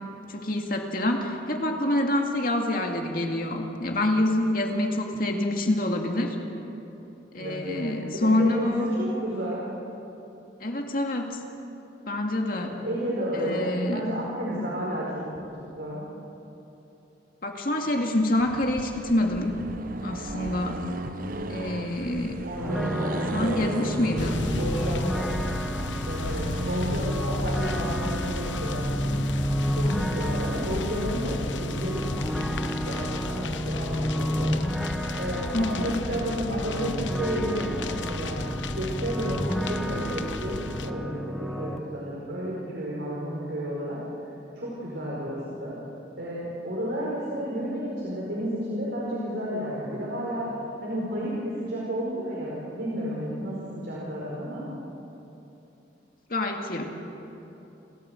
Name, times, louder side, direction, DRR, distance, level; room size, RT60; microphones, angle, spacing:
voice 1, 0.3-6.4 7.3-8.9 10.6-11.4 12.1-12.8 13.3-14.0 17.4-19.6 20.0-20.8 21.5-22.4 23.3-24.4 35.5-36.0 56.3-56.9, left 1 dB, 50° left, 2 dB, 2.2 m, -26 dB
voice 2, 7.4-9.7 12.6-16.1 22.4-23.6 24.6-25.2 26.1-29.2 29.7-32.1 32.5-34.6 35.2-38.4 38.7-44.0 44.5-45.8 46.2-50.5 50.8-54.6, equal, 70° right, -6 dB, 4.8 m, -32 dB
Accelerating revving vroom, 18.4-27.1, right 1 dB, 50° right, 0.9 m, -36 dB
sound 1, 22.6-41.8, equal, ahead, 0.9 m, -31 dB
sound 2, 24.2-40.9, left 3 dB, 90° left, 0.9 m, -34 dB
29.5 x 13.5 x 8.0 m, 3.0 s
head